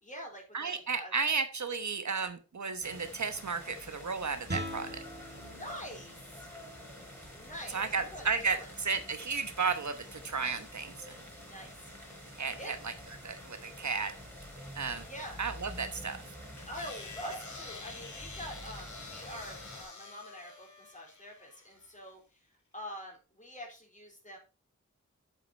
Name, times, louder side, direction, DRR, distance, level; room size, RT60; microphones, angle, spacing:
voice 1, 0.0-1.1 5.4-6.5 7.3-8.7 11.4-11.9 12.6-12.7 15.0-15.4 16.7-22.2 22.7-24.4, equal, 25° left, 0 dB, 4.2 m, -46 dB
voice 2, 0.5-5.0 7.7-11.1 12.4-12.9 13.2-14.1 14.7-15.0 15.4-16.2, right 5 dB, 65° right, 9 dB, 1.1 m, -33 dB
sound 1, 2.8-19.8, equal, 10° left, 5.1 m, -48 dB
Guitar, 4.4-10.0, equal, 35° right, 2.9 m, -45 dB
sound 2, 16.6-21.9, left 4 dB, 70° left, 2.3 m, -48 dB
8.0 x 7.9 x 4.4 m, 0.30 s
wide cardioid pair, 90°, 30 cm